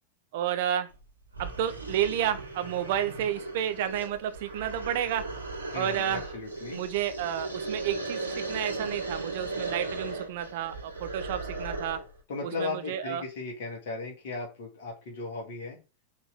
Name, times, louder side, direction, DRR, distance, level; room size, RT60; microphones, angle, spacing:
voice 1, 0.3-0.9 1.4-5.2 5.7-6.2 6.7-12.0 12.4-13.2, right 10 dB, 50° right, 0.7 m, -31 dB
sound 1, 0.9-1.0 1.3-12.1, right 3 dB, 80° right, 2.3 m, -37 dB
voice 2, 5.7-6.8 12.3-15.8, left 3 dB, 55° left, 2.3 m, -36 dB
5.7 x 3.8 x 6.0 m
figure-of-eight pair, 90°, 0 cm